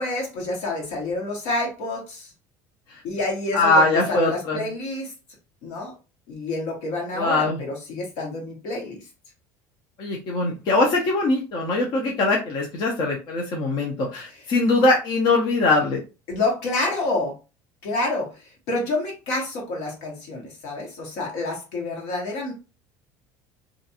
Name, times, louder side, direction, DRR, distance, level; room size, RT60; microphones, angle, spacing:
voice 1, 0.0-2.3 3.0-5.1 5.6-5.9 6.3-9.1 14.3-14.4 16.3-17.3 17.8-22.5, left 2 dB, 75° left, 0 dB, 1.2 m, -28 dB
voice 2, 3.5-4.7 7.1-7.6 10.0-16.0, left 2 dB, 50° left, -1 dB, 0.7 m, -22 dB
2.5 x 2.3 x 2.7 m, 0.31 s
supercardioid pair, 105°, 10 cm